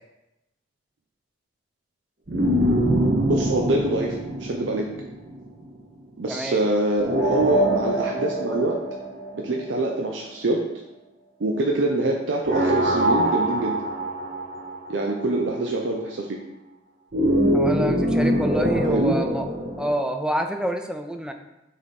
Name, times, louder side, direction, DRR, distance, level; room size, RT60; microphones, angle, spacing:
sound 1, 2.3-5.6 7.0-9.8 12.5-15.1 17.1-19.9, right 1 dB, 50° right, 1.0 m, -24 dB
voice 1, 3.3-4.9 6.2-8.8 9.3-10.6 11.4-13.8 14.9-16.4 18.9-19.2, right 2 dB, 85° right, 0 dB, 0.7 m, -25 dB
voice 2, 6.3-6.6 17.5-19.5 19.8-21.3, equal, 5° right, 5 dB, 0.5 m, -27 dB
7.4 x 3.5 x 4.2 m, 0.94 s
head